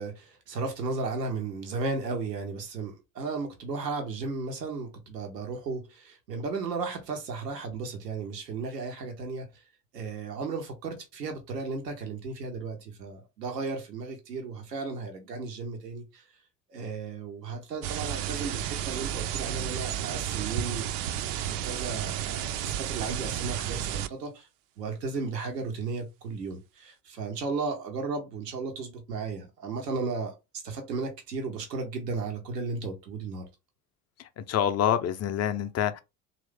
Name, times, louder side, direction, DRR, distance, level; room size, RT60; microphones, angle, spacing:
voice 1, 0.0-9.6 9.9-16.2 16.7-20.9 21.5-24.5 24.8-33.5, right 4 dB, 85° right, 0.8 m, -35 dB
sound 1, 17.8-24.1, right 10 dB, 55° right, 0.5 m, -32 dB
voice 2, 34.2-36.0, left 9 dB, 35° left, 0.5 m, -27 dB
3.0 x 2.6 x 3.3 m
figure-of-eight pair, 60°, 47 cm